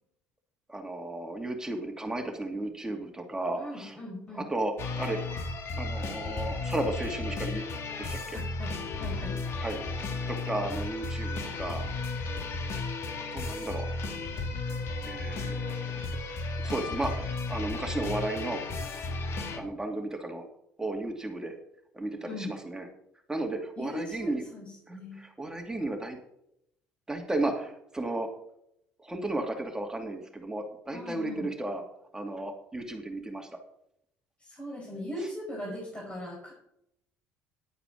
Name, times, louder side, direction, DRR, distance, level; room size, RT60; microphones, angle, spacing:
voice 1, 0.7-4.0 4.3-5.2 5.8-7.6 8.0-8.4 9.6-11.8 12.7-12.8 13.1-13.9 15.0-16.2 16.6-18.6 19.5-20.4 20.8-21.5 21.9-22.9 23.3-24.4 24.9-26.2 27.1-28.3 29.0-31.8 32.1-33.5, right 2 dB, 10° right, 3 dB, 2.6 m, -34 dB
voice 2, 3.6-4.5 8.3-9.4 22.3-22.5 23.8-25.2 30.9-31.6 34.4-36.5, left 1 dB, 20° left, -3 dB, 5.2 m, -39 dB
sound 1, 4.8-19.6, left 3 dB, 55° left, 2.1 m, -34 dB
11.0 x 8.8 x 5.2 m, 0.76 s
hypercardioid pair, 65°, 5 cm